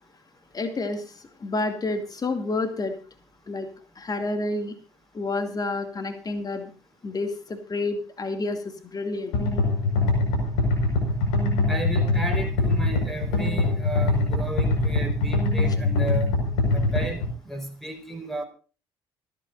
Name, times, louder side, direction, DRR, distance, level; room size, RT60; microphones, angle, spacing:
voice 1, 0.5-2.9 3.5-3.7 4.0-4.8 5.1-6.7 7.0-9.4, left 2 dB, 30° left, 7 dB, 2.5 m, -29 dB
sound 1, 9.3-17.3, left 3 dB, 70° left, 5.4 m, -23 dB
voice 2, 11.7-16.3 16.7-18.4, right 1 dB, ahead, 3 dB, 4.7 m, -33 dB
27.0 x 9.4 x 2.6 m, 0.37 s
figure-of-eight pair, 50°, 13 cm